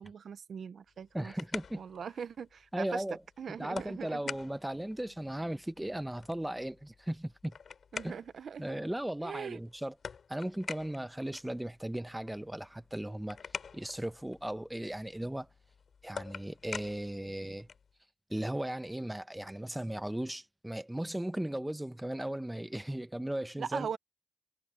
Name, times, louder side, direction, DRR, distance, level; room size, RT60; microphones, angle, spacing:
voice 1, 0.0-1.3 1.7-3.0 3.4-4.2 7.9-8.6 9.2-9.6 23.6-24.0, right 7 dB, 80° right, 0.6 m, -40 dB
sound 1, 0.9-18.0, left 6 dB, 70° left, 4.4 m, -48 dB
voice 2, 1.1-1.8 2.7-3.2 3.6-7.6 8.0-8.1 8.6-9.9 10.3-13.4 13.7-15.5 16.0-17.7 18.3-23.9, right 1 dB, 10° right, 1.1 m, -37 dB
cardioid pair, 80°, 0 cm